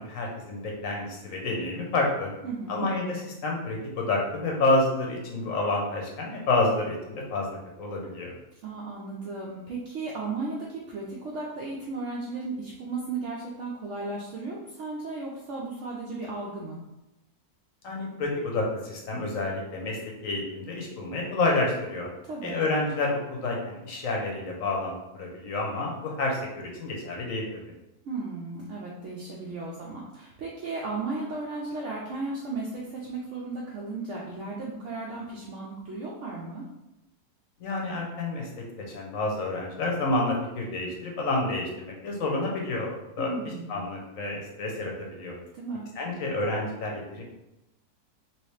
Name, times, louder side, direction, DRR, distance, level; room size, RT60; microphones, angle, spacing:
voice 1, 0.0-2.3 2.7-8.3 17.8-22.1 22.4-27.6 37.6-38.5 38.9-45.4 46.0-47.2, left 2 dB, 65° left, -1 dB, 1.0 m, -29 dB
voice 2, 2.4-2.9 8.6-16.8 22.3-22.6 28.0-36.7 43.2-43.7 45.5-45.8, right 3 dB, 65° right, -4 dB, 0.8 m, -35 dB
3.1 x 2.9 x 3.1 m, 0.93 s
omnidirectional pair, 1.6 m